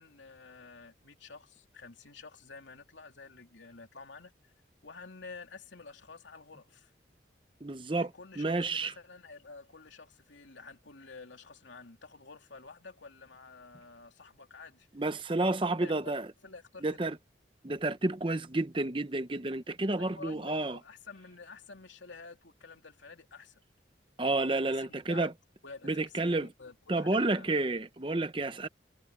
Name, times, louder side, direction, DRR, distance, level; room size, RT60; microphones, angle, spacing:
voice 1, 0.0-4.5 4.8-6.9 7.9-14.9 15.7-16.1 16.4-17.0 20.0-23.6 24.5-25.3 25.6-27.5, left 4 dB, 90° left, 3.2 m, -50 dB
voice 2, 7.6-8.1 8.4-8.9 14.9-16.3 16.8-17.2 17.6-20.8 24.2-25.3 25.8-26.5 26.9-28.7, right 2 dB, 25° right, 0.8 m, -30 dB
head